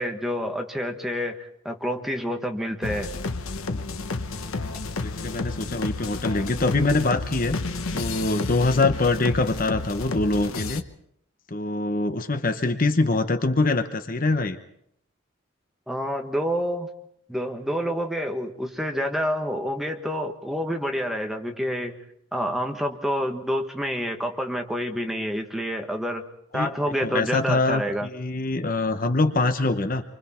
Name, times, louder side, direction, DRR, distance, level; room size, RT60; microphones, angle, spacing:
voice 1, 0.0-3.1 15.9-16.9 17.3-22.0 22.3-26.2 26.5-28.1, equal, ahead, 3 dB, 1.4 m, -28 dB
sound 1, 2.8-10.8, left 3 dB, 90° left, 1.1 m, -31 dB
voice 2, 5.0-7.6 7.9-10.8 11.5-14.6 26.5-26.7 27.0-30.0, left 2 dB, 40° left, 8 dB, 0.9 m, -24 dB
28.0 x 24.5 x 4.4 m, 0.72 s
head